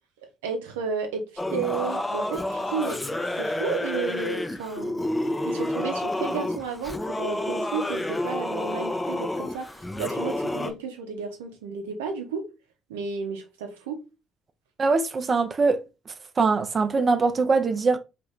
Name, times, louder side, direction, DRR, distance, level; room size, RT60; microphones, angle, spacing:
voice 1, 0.4-5.0 5.4-12.5 12.9-14.0, right 5 dB, 85° right, 0.6 m, -32 dB
Singing / Musical instrument, 1.4-10.7, left 1 dB, 15° left, 0.5 m, -29 dB
voice 2, 14.8-15.8 16.1-18.0, right 4 dB, 40° right, 0.5 m, -22 dB
2.7 x 2.5 x 3.2 m
hypercardioid pair, 50°, 0 cm